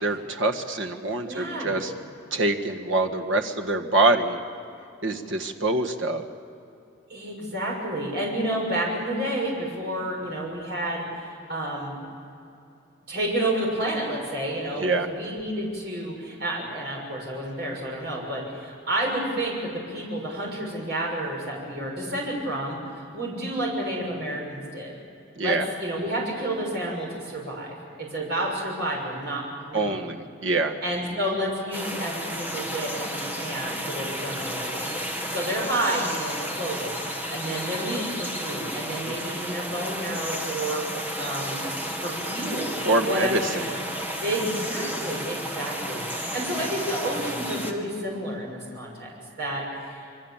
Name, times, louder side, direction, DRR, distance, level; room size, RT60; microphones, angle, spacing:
voice 1, 0.0-1.9 2.3-4.4 5.0-6.3 14.8-15.1 25.4-25.6 29.7-30.8 39.0-39.1 42.8-43.7, right 2 dB, 80° right, 3 dB, 1.7 m, -25 dB
voice 2, 1.3-1.8 7.1-12.0 13.1-24.9 25.4-30.0 30.8-41.7 42.0-43.8 44.2-49.1 49.4-50.0, right 1 dB, 55° right, -2 dB, 6.5 m, -30 dB
sound 1, 31.7-47.7, equal, 10° right, 2.0 m, -32 dB
27.0 x 23.5 x 7.4 m, 2.6 s
head